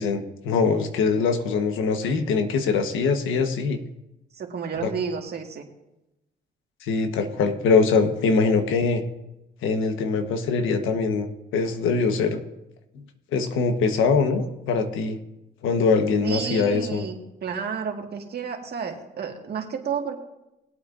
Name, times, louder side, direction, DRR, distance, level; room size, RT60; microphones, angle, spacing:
voice 1, 0.0-3.8 4.8-4.9 6.8-9.0 9.6-12.4 13.3-15.2 15.6-17.1, left 4 dB, 90° left, 7 dB, 1.3 m, -23 dB
voice 2, 4.4-5.7 16.2-20.2, right 6 dB, 55° right, 2 dB, 2.0 m, -31 dB
21.0 x 8.5 x 2.6 m, 0.92 s
cardioid pair, 90°, 20 cm